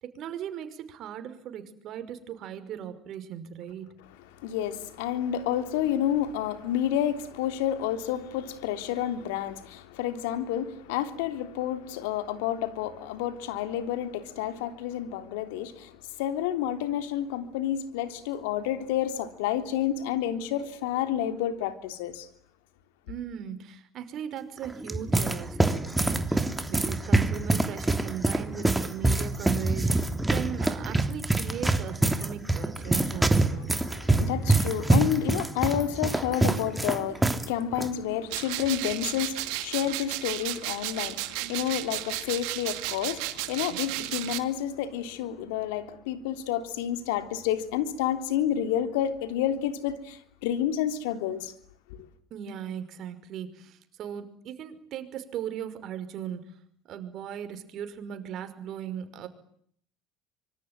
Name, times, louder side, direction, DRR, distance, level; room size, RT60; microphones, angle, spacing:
voice 1, 0.0-3.9 23.1-33.8 52.3-56.5 56.9-59.3, right 9 dB, 50° right, 5.6 m, -38 dB
voice 2, 4.4-22.3 33.8-51.5, left 10 dB, 75° left, 3.5 m, -30 dB
sound 1, 24.6-37.5 37.7-37.9 38.6-38.9, right 2 dB, 10° right, 3.1 m, -25 dB
sound 2, 38.3-44.4, right 18 dB, 70° right, 2.6 m, -33 dB
25.5 x 24.5 x 9.3 m
hypercardioid pair, 85°, 0 cm